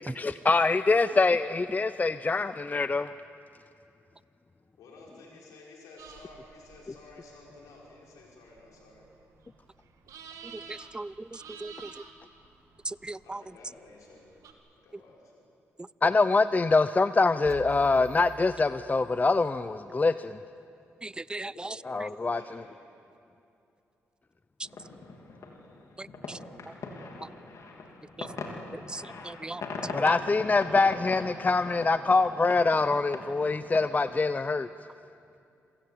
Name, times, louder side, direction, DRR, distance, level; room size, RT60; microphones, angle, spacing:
voice 1, 0.2-3.1 16.0-20.4 21.9-22.4 29.9-34.7, left 3 dB, 30° left, 13 dB, 0.6 m, -24 dB
voice 2, 4.8-9.1 13.2-14.3 14.8-15.5 21.3-22.7, left 3 dB, 85° left, -3 dB, 5.7 m, -52 dB
sound 1, 6.0-14.5, right 6 dB, 80° right, 2.0 m, -51 dB
voice 3, 10.4-12.0 12.8-13.4 15.8-15.9 21.0-22.1 24.6-24.7 26.0-26.4 26.7-26.8 27.2-27.3 28.2-28.3 28.7-30.2, right 2 dB, 15° right, 20 dB, 0.5 m, -39 dB
sound 2, 17.4-19.5, right 8 dB, 65° right, 1.2 m, -47 dB
sound 3, 24.6-34.2, left 3 dB, 65° left, 3.2 m, -41 dB
27.5 x 16.0 x 8.6 m, 2.6 s
supercardioid pair, 60°, 6 cm